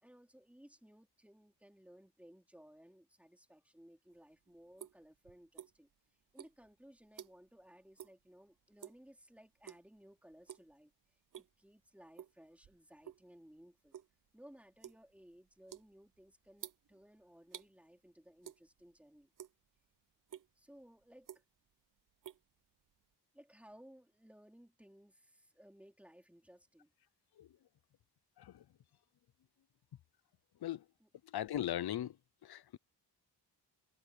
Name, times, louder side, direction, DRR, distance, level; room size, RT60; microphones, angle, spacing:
voice 1, 0.0-5.9 6.3-14.0 14.3-19.3 20.6-21.4 23.3-26.9 31.0-31.1, equal, 5° right, 3.6 m, -60 dB
sound 1, 4.1-6.0 6.3-7.6 7.9-8.2 8.6-9.1 9.6-10.0 10.3-10.7 11.1-11.7 12.2-13.3 13.6-17.7 18.4-19.0 19.2-19.9 20.3-20.5 21.0-21.7 22.0-23.1, right 9 dB, 50° right, 0.8 m, -52 dB
voice 2, 31.2-32.2 32.4-32.8, left 12 dB, 60° left, 0.7 m, -39 dB
wide cardioid pair, 170°, 42 cm